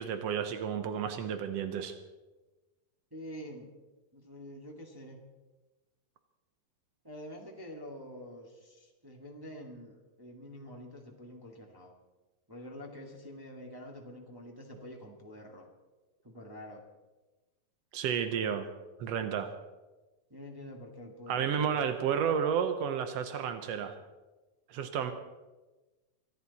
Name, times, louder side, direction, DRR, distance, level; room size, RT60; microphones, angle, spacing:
voice 1, 0.0-1.9 17.9-18.7 19.0-19.5 21.3-23.9 24.7-25.1, right 7 dB, 90° right, 8 dB, 1.4 m, -31 dB
voice 2, 3.1-3.7 4.1-5.2 7.0-11.9 12.5-15.7 16.2-16.8 20.3-21.9, equal, 15° right, -1 dB, 0.7 m, -47 dB
24.5 x 13.0 x 4.2 m, 1.1 s
omnidirectional pair, 4.2 m